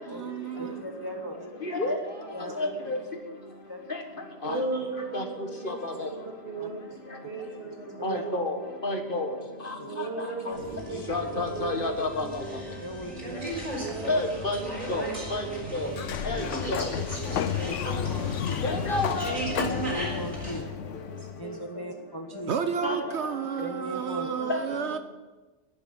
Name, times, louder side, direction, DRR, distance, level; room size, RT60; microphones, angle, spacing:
voice 1, 0.1-0.8 22.5-25.0, right 7 dB, 70° right, 9 dB, 1.0 m, -31 dB
voice 2, 0.6-1.5 2.3-2.6 3.7-3.8 4.5-4.6 6.6-6.7 8.0-8.2 9.8-9.9 10.4-11.3 12.8-13.4 13.9-14.0 16.3-16.5 17.3-18.6 19.6-20.7 21.4-22.5 23.6-24.3, equal, 20° left, 5 dB, 0.9 m, -39 dB
voice 3, 1.6-2.0 2.6-3.0 3.9-4.0 4.4-4.6 5.1-5.2 5.6-6.1 8.0-8.6 8.8-9.3 9.6-9.7 11.1-12.4 14.1-14.6 14.9-15.4 15.7-15.9 16.2-16.8 18.6-19.4 22.8-23.1 24.5-24.6, left 2 dB, 45° left, 4 dB, 1.8 m, -29 dB
voice 4, 4.4-5.7 6.4-8.3 9.9-12.5 13.8-15.2 15.4-16.0 16.3-16.6 16.9-17.7 18.6-20.0 21.1-21.6 22.3-22.5 24.4-24.5, right 3 dB, 55° right, -1 dB, 3.2 m, -38 dB
sound 1, 10.5-20.6, right 1 dB, 30° right, 4.2 m, -36 dB
Sliding door, 15.9-21.6, left 10 dB, 85° left, 1.0 m, -32 dB
11.0 x 10.5 x 8.9 m, 1.2 s
omnidirectional pair, 1.2 m